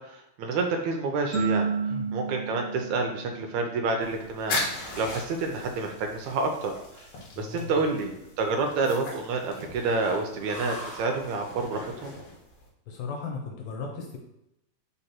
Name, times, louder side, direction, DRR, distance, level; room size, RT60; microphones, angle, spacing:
voice 1, 0.1-1.7 2.1-4.6 5.0-6.7 7.4-12.2, right 3 dB, 80° right, 3 dB, 1.7 m, -28 dB
sound 1, 1.3-4.0, right 5 dB, 25° right, 2.2 m, -31 dB
sound 2, 4.0-12.7, left 2 dB, 60° left, 2.4 m, -38 dB
voice 2, 7.4-7.8 12.9-14.2, left 4 dB, 80° left, 1 dB, 2.5 m, -36 dB
5.2 x 4.5 x 4.4 m, 0.84 s
omnidirectional pair, 4.0 m